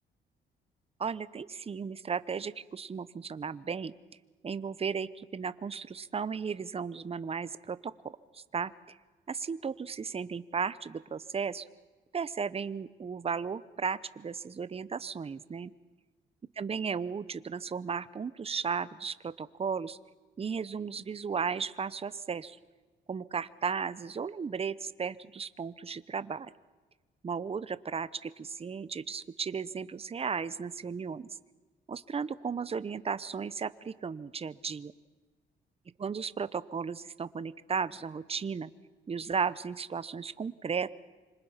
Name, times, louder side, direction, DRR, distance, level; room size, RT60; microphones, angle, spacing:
voice 1, 1.0-3.9 4.4-9.0 9.3-11.6 12.1-15.7 16.6-20.0 20.4-22.6 23.1-26.5 27.2-31.3 31.9-34.9 36.0-38.7 39.1-40.9, right 6 dB, 30° right, 16 dB, 0.8 m, -35 dB
26.5 x 25.5 x 5.8 m, 1.3 s
cardioid pair, 90°, 20 cm